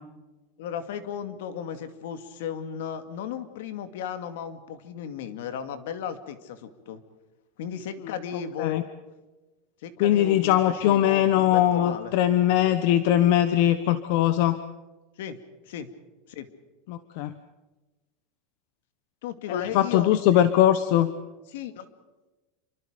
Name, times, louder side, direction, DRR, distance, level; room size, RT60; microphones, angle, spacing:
voice 1, 0.6-7.0 7.6-8.9 9.8-12.1 15.2-15.4 15.7-15.9 16.3-16.5 19.2-20.1 21.5-21.9, left 8 dB, 65° left, 10 dB, 2.3 m, -35 dB
voice 2, 10.0-14.6 16.9-17.3 19.5-21.1, left 12 dB, 45° left, 12 dB, 1.0 m, -21 dB
28.0 x 25.0 x 5.2 m, 1.1 s
supercardioid pair, 180°, 0 cm